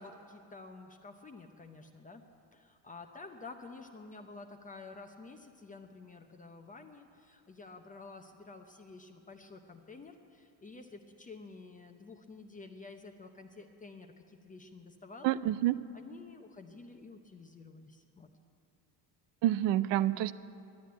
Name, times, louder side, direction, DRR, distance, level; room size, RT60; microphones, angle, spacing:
voice 1, 0.0-2.2 2.5-15.4 15.9-18.3, left 3 dB, 20° left, 5 dB, 0.7 m, -50 dB
voice 2, 15.2-15.8 19.4-20.3, right 13 dB, 75° right, 15 dB, 0.6 m, -28 dB
12.0 x 10.5 x 9.4 m, 2.7 s
cardioid pair, 135°, 43 cm